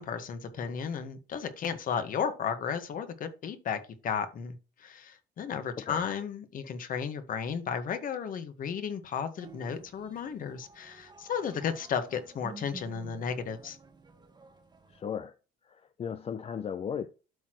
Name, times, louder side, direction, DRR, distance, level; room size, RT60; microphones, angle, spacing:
voice 1, 0.0-4.5 4.8-13.8, left 7 dB, 55° left, 1.6 m, -34 dB
voice 2, 5.8-6.1 14.9-15.3 15.6-17.1, left 7 dB, 35° left, 0.5 m, -36 dB
sound 1, 9.4-15.0, right 4 dB, 25° right, 1.3 m, -51 dB
12.5 x 4.2 x 3.1 m
cardioid pair, 110°, 17 cm